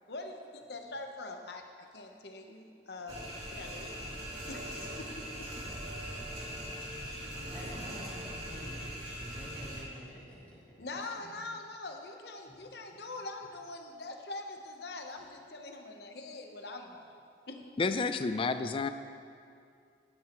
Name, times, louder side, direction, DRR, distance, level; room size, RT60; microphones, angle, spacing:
voice 1, 0.1-4.0 4.5-4.7 5.0-5.5 10.8-17.2 17.5-17.8, left 2 dB, 60° left, 4 dB, 1.0 m, -43 dB
sound 1, 3.1-9.8, equal, 30° right, 3.0 m, -41 dB
voice 2, 3.9-4.2 7.0-8.8 9.2-10.8 11.1-11.3 12.4-12.5 12.9-13.0, equal, 5° left, -10 dB, 3.3 m, -50 dB
voice 3, 17.8-18.9, left 4 dB, 30° left, 10 dB, 0.3 m, -30 dB
15.5 x 11.0 x 3.1 m, 2.4 s
head